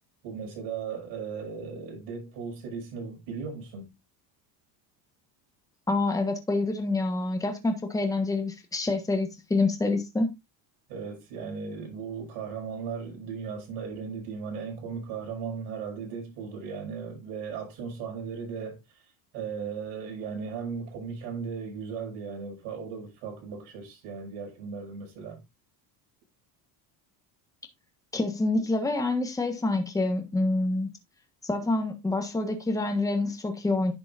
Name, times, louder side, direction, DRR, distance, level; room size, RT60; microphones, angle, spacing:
voice 1, 0.2-3.9 10.9-19.0 19.3-25.4, right 6 dB, 80° right, 6.3 m, -37 dB
voice 2, 5.9-10.3 28.1-30.9 31.4-33.9, left 2 dB, 10° left, 1.4 m, -27 dB
10.5 x 6.9 x 2.6 m
cardioid pair, 145°, 42 cm